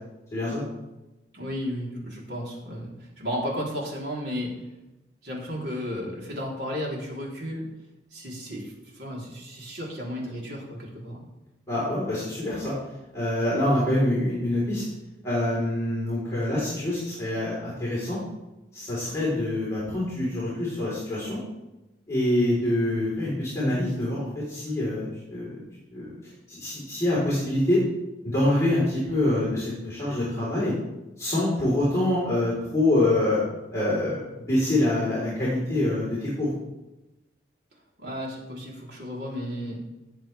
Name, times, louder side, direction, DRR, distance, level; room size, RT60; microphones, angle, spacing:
voice 1, 0.3-0.6 11.7-12.7 13.1-14.8 15.2-18.2 18.7-21.4 22.1-25.6 25.9-26.1 26.5-27.8 28.2-30.7 31.2-33.4 33.7-36.5, left 1 dB, 15° left, -9 dB, 4.0 m, -25 dB
voice 2, 1.3-4.5 5.2-7.7 8.1-11.2 38.0-39.8, equal, 70° right, -3 dB, 3.6 m, -33 dB
17.5 x 7.4 x 3.5 m, 0.99 s
head